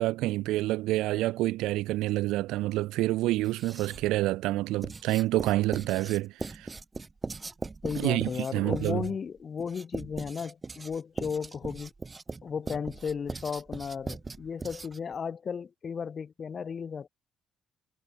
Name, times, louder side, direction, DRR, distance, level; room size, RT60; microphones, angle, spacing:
voice 1, 0.0-6.7 8.0-9.0, right 17 dB, 85° right, 0.5 m, -28 dB
Writing, 3.4-4.2 4.8-15.1, right 3 dB, 25° right, 0.8 m, -39 dB
voice 2, 7.8-11.9 12.4-17.1, left 6 dB, 45° left, 2.9 m, -35 dB
supercardioid pair, 75°, 0 cm